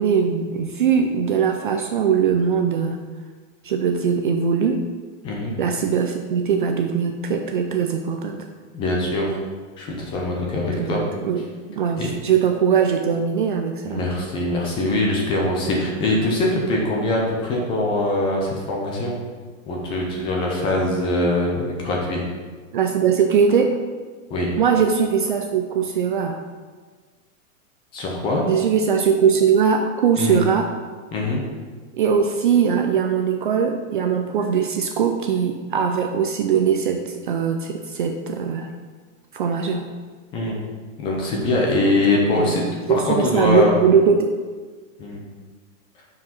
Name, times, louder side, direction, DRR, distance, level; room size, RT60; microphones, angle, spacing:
voice 1, 0.0-3.1 3.6-4.9 5.6-8.4 10.8-14.1 22.7-23.8 24.6-26.4 28.5-30.7 31.9-38.7 39.3-39.9 42.3-42.6 42.9-44.3, right 6 dB, 40° right, 4 dB, 0.4 m, -21 dB
voice 2, 5.2-5.5 8.7-9.4 9.8-11.0 12.0-12.1 13.8-19.2 19.7-22.2 24.3-24.5 27.9-28.4 30.2-30.4 31.1-31.4 40.3-40.6 41.0-42.6 42.9-43.7 45.0-45.2, left 2 dB, 10° left, -2 dB, 0.6 m, -22 dB
6.1 x 4.8 x 5.7 m, 1.5 s
supercardioid pair, 165°, 41 cm